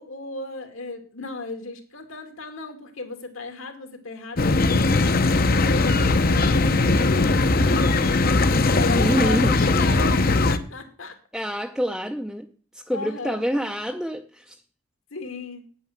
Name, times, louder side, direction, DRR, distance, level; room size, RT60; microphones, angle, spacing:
voice 1, 0.0-5.1 5.5-7.8 8.7-11.1 12.9-13.4 15.1-15.6, left 3 dB, 75° left, 6 dB, 2.4 m, -35 dB
sound 1, 4.4-10.6, left 3 dB, 45° left, 0.8 m, -20 dB
voice 2, 8.9-9.6 11.3-14.6, equal, ahead, 4 dB, 0.6 m, -27 dB
9.1 x 9.0 x 7.3 m, 0.43 s
head